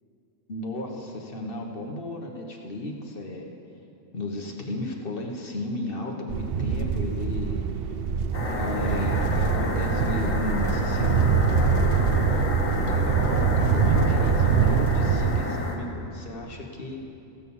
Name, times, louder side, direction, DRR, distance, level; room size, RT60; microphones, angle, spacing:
voice 1, 0.5-3.5 4.1-7.9 8.4-12.2 12.9-17.0, left 2 dB, 45° left, 1 dB, 1.4 m, -34 dB
sound 1, 6.3-15.4, right 6 dB, 60° right, 0.7 m, -24 dB
sound 2, 8.3-15.8, left 2 dB, 80° left, 1.9 m, -30 dB
16.0 x 6.3 x 7.1 m, 2.8 s
omnidirectional pair, 1.3 m